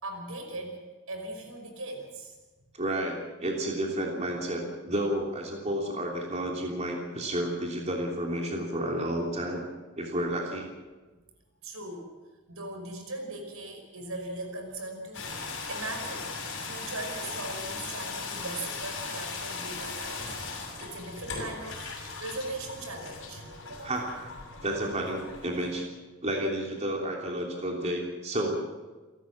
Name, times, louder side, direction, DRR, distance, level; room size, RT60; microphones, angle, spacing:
voice 1, 0.0-0.8 1.1-2.4 11.6-12.1 12.5-16.3 16.6-21.8 22.2-23.4 23.7-24.0, right 2 dB, 80° right, 4 dB, 5.5 m, -39 dB
voice 2, 2.7-9.6 10.0-10.7 23.8-24.1 24.6-25.8 26.2-28.6, right 1 dB, 30° right, 0 dB, 3.2 m, -31 dB
sound 1, 15.1-25.8, left 4 dB, 65° left, 6.6 m, -38 dB
29.0 x 13.0 x 7.5 m, 1.3 s
head